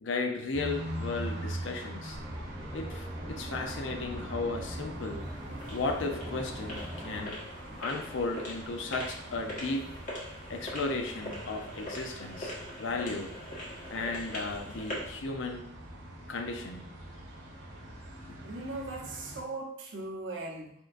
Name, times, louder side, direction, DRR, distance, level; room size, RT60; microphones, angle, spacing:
voice 1, 0.0-2.2 2.7-5.3 5.7-7.4 7.8-9.9 10.5-13.3 13.9-15.7 16.3-16.8, left 3 dB, 70° left, 4 dB, 0.5 m, -35 dB
sound 1, 0.5-19.4, right 1 dB, 85° right, 1.4 m, -43 dB
sound 2, 2.1-7.3, equal, 20° right, 0.9 m, -41 dB
sound 3, 4.9-15.2, left 1 dB, 45° left, 1.3 m, -43 dB
voice 2, 18.4-20.7, right 2 dB, 70° right, -1 dB, 0.8 m, -39 dB
4.6 x 4.3 x 2.5 m, 0.73 s
head